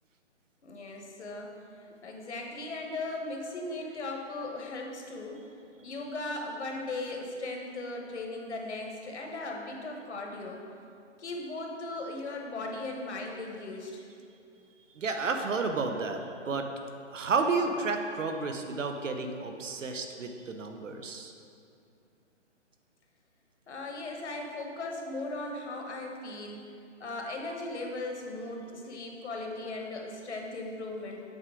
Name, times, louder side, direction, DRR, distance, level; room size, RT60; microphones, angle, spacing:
voice 1, 0.6-1.5 2.0-5.4 5.8-10.6 11.2-14.1 23.7-26.7 27.0-31.2, left 2 dB, 65° left, 1 dB, 1.2 m, -37 dB
voice 2, 14.9-16.7 17.1-21.3, right 4 dB, 85° right, 5 dB, 0.9 m, -31 dB
7.9 x 3.8 x 4.9 m, 2.5 s
hypercardioid pair, 165°, 37 cm